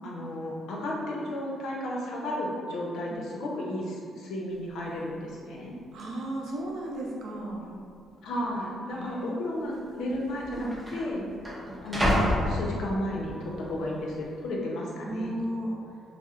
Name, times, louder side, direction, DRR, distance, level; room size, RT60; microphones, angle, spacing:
voice 1, 0.0-5.7 8.2-11.2 11.8-15.3, left 1 dB, 80° left, -3 dB, 0.7 m, -33 dB
sound 1, 4.5-4.6 4.9-5.3 6.0-6.1 6.8-7.4 7.6-7.8 8.6-8.8 9.8-9.9 10.1-13.3 13.8-14.2, left 1 dB, 15° right, 0.7 m, -30 dB
voice 2, 5.9-7.6 8.9-9.3 10.5-10.7 15.0-15.8, right 1 dB, 70° right, -2 dB, 0.6 m, -34 dB
5.8 x 2.1 x 2.4 m, 2.2 s
cardioid pair, 140°, 0 cm